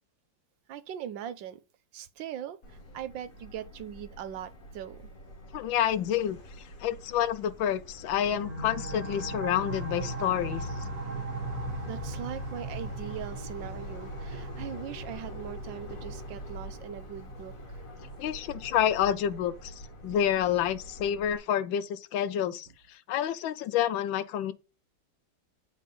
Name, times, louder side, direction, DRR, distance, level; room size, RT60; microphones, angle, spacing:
voice 1, 0.7-1.6 1.9-5.1 11.8-17.5, right 10 dB, 80° right, 1.4 m, -40 dB
Subway metro underground, 2.6-21.4, equal, 45° left, 1.9 m, -45 dB
voice 2, 5.5-6.4 6.8-10.7 18.2-19.7 20.0-24.5, left 10 dB, 85° left, 1.4 m, -28 dB
sound 1, 8.2-19.6, right 2 dB, 55° right, 1.8 m, -39 dB
8.4 x 4.2 x 5.4 m
omnidirectional pair, 2.1 m